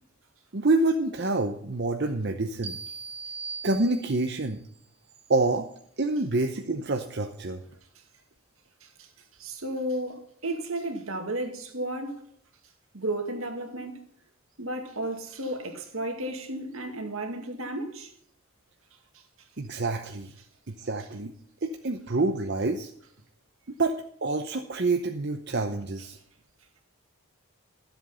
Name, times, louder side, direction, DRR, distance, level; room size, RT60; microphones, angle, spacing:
voice 1, 0.5-2.8 3.6-4.6 5.3-5.7 6.0-7.6 19.6-20.3 20.7-21.3 21.6-22.9 23.8-23.9 24.2-26.2, right 2 dB, 50° right, 0.8 m, -27 dB
sound 1, 2.6-4.4, right 5 dB, 25° right, 1.5 m, -39 dB
voice 2, 9.4-12.2 12.9-14.0 14.6-18.1, right 1 dB, 75° right, 2.2 m, -33 dB
13.0 x 8.0 x 5.6 m
head